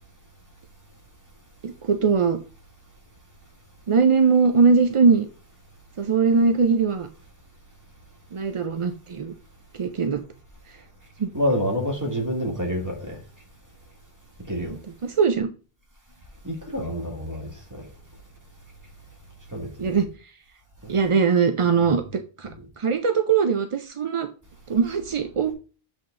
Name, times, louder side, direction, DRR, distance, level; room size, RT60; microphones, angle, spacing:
voice 1, 1.6-2.4 3.9-5.3 6.0-7.1 8.3-9.3 9.8-10.2 11.2-11.3 15.0-15.5 19.8-20.1 20.9-22.5 22.8-24.3 24.7-25.5, right 5 dB, 50° right, 0.4 m, -21 dB
voice 2, 11.3-13.2 14.5-14.7 16.4-17.9 19.5-20.0 20.8-20.9 21.6-21.9 22.4-22.5, equal, 15° right, 1.9 m, -28 dB
7.7 x 3.6 x 3.7 m
omnidirectional pair, 1.0 m